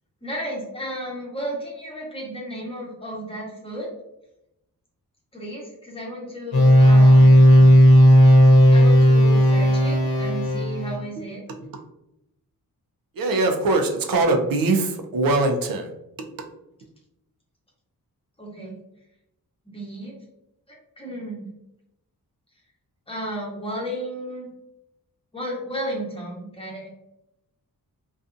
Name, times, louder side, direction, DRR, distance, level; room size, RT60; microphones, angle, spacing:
voice 1, 0.2-3.9 5.3-7.7 8.7-11.4 18.4-18.8 19.7-20.2 20.7-21.5 23.1-24.5 25.3-26.9, right 1 dB, 15° left, -3 dB, 0.8 m, -33 dB
sound 1, 6.5-11.0, equal, 85° left, 0.8 m, -13 dB
voice 2, 13.1-15.9 16.4-16.5, right 2 dB, 65° right, 4 dB, 0.5 m, -22 dB
2.6 x 2.3 x 2.5 m, 0.85 s
wide cardioid pair, 125°, 36 cm